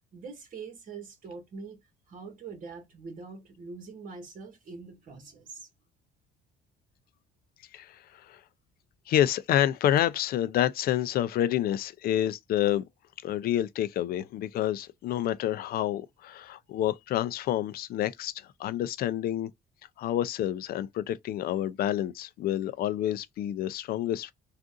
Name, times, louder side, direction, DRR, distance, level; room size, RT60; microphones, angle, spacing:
voice 1, 0.1-1.8 2.1-5.7, right 4 dB, 50° right, 1.5 m, -43 dB
voice 2, 7.7-8.4 9.1-12.8 13.2-19.5 20.0-24.3, left 12 dB, 60° left, 0.4 m, -28 dB
3.7 x 2.5 x 2.4 m
cardioid pair, 110°, 17 cm